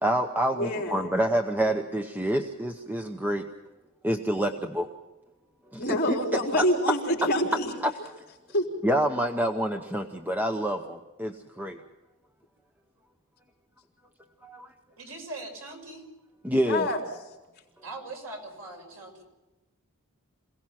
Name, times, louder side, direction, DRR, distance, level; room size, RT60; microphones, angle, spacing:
voice 1, 0.0-3.5 4.0-4.9 5.7-6.4 7.8-7.9 8.8-11.8 14.4-14.7 16.4-16.9, right 1 dB, 10° right, 5 dB, 0.8 m, -27 dB
voice 2, 0.5-1.1 5.8-7.7 8.5-8.6 16.7-17.0, equal, 45° left, 0 dB, 4.0 m, -26 dB
voice 3, 15.0-16.1 17.8-19.2, right 2 dB, 80° right, 2 dB, 5.8 m, -41 dB
27.0 x 18.0 x 5.9 m, 1.1 s
head